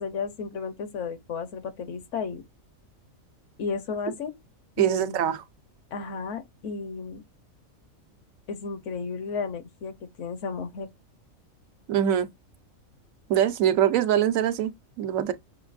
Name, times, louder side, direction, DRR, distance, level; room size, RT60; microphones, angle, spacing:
voice 1, 0.0-2.4 3.6-4.3 4.8-5.2 5.9-7.2 8.5-10.9, left 5 dB, 65° left, 1.0 m, -33 dB
voice 2, 4.8-5.4 11.9-12.3 13.3-15.3, right 10 dB, 75° right, 1.0 m, -23 dB
6.2 x 2.6 x 2.4 m
omnidirectional pair, 1.4 m